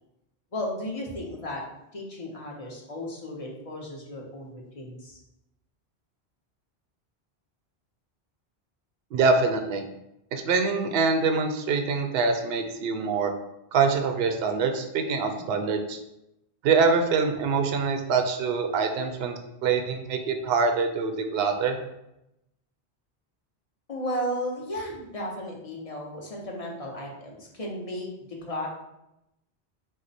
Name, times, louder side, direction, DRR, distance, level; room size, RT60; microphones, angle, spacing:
voice 1, 0.5-1.6 1.9-5.2 23.9-28.1 28.4-28.7, equal, 35° left, -2 dB, 0.8 m, -34 dB
voice 2, 9.1-9.8 10.3-13.3 13.7-16.0 16.6-21.8, right 4 dB, 70° right, 5 dB, 0.8 m, -24 dB
4.7 x 2.1 x 4.0 m, 0.86 s
omnidirectional pair, 1.1 m